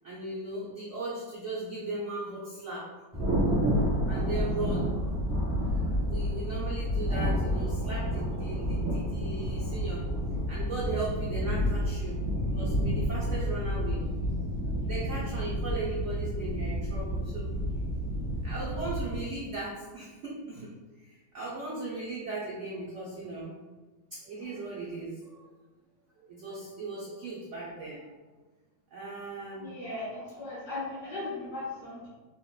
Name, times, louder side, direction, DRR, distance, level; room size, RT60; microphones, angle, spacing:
voice 1, 0.0-2.9 4.1-5.2 5.8-10.0 10.5-12.2 12.6-14.1 14.8-17.5 18.4-20.7 21.0-23.6 24.1-25.5 26.2-28.1 28.9-29.7, right 2 dB, 85° right, -6 dB, 0.6 m, -37 dB
Thunder, 3.1-19.2, equal, 20° left, 0.5 m, -30 dB
voice 2, 29.6-32.1, left 2 dB, 60° left, -7 dB, 0.8 m, -37 dB
3.6 x 2.1 x 2.3 m, 1.2 s
omnidirectional pair, 2.0 m